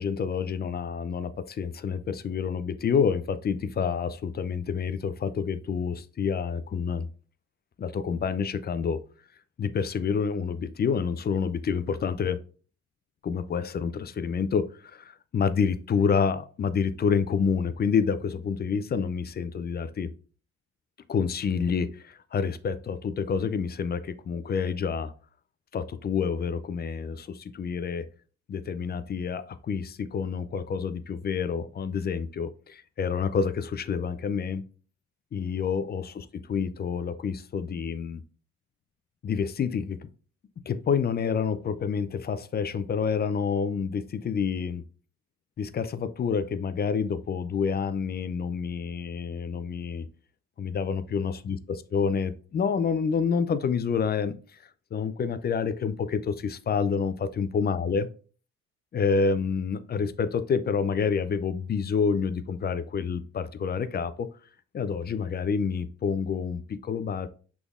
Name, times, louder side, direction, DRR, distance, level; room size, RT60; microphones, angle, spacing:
voice 1, 0.0-7.1 7.8-9.0 9.6-12.4 13.2-20.1 21.1-25.1 25.7-28.1 28.5-34.6 35.3-38.2 39.2-40.1 40.7-44.8 45.6-50.1 50.6-58.1 58.9-64.3 64.7-67.3, left 6 dB, 35° left, 0.4 m, -28 dB
6.0 x 3.5 x 2.4 m
cardioid pair, 90°, 30 cm